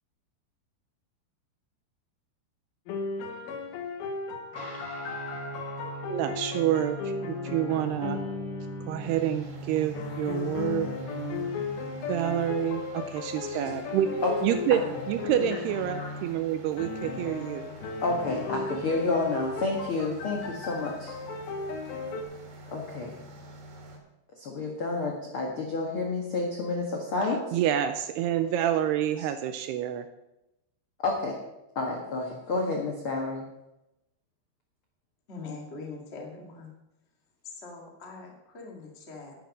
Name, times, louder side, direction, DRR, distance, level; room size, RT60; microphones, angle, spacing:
sound 1, 2.9-9.3 10.0-16.4 16.8-22.2, left 4 dB, 70° left, 2.8 m, -36 dB
Guitar, 4.5-12.6, right 1 dB, 15° right, 3.7 m, -41 dB
voice 1, 6.1-8.2 8.9-10.9 12.1-17.7 27.5-30.1, right 10 dB, 85° right, 9 dB, 2.4 m, -28 dB
sound 2, 9.0-24.0, right 1 dB, 55° right, 3.5 m, -47 dB
voice 2, 13.4-14.3 15.9-16.1 18.0-21.1 22.7-23.2 24.3-27.6 31.0-31.4 31.7-33.5, left 3 dB, 85° left, 0 dB, 1.1 m, -30 dB
voice 3, 35.3-36.7 37.4-39.3, left 4 dB, 50° left, 0 dB, 0.7 m, -42 dB
11.5 x 10.5 x 5.3 m, 0.90 s
omnidirectional pair, 5.2 m